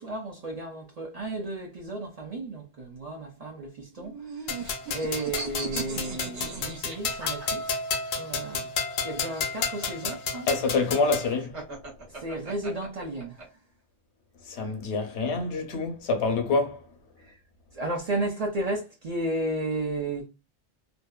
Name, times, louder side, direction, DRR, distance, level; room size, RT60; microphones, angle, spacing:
voice 1, 0.0-4.7 4.9-7.8 8.1-8.7 9.0-10.5 12.1-13.5 17.3-17.4 17.7-20.3, right 2 dB, 55° right, 0.4 m, -33 dB
sound 1, 3.9-8.0 9.2-13.4, right 3 dB, 80° right, 1.2 m, -38 dB
sound 2, 4.5-11.3, left 5 dB, 60° left, 0.6 m, -32 dB
voice 2, 10.5-11.6 14.5-16.8, left 3 dB, 80° left, 0.9 m, -26 dB
2.6 x 2.1 x 2.2 m
omnidirectional pair, 1.1 m